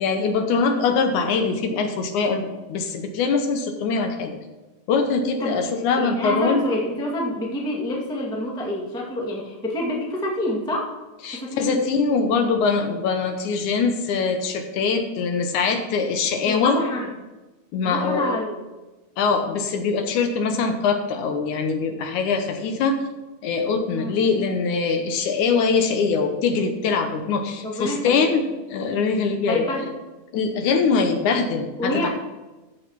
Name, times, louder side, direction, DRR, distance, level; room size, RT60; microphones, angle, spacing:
voice 1, 0.0-4.4 4.9-6.6 11.2-16.8 17.7-18.4 19.2-23.0 23.4-28.4 28.7-29.6 30.3-32.1, left 5 dB, 70° left, 6 dB, 2.2 m, -23 dB
voice 2, 6.0-10.9 11.3-11.8 16.4-17.1 17.8-18.6 24.0-24.2 27.6-28.3 29.5-29.9 31.8-32.1, left 1 dB, 5° left, -2 dB, 0.8 m, -27 dB
14.0 x 6.4 x 4.6 m, 1.1 s
omnidirectional pair, 3.8 m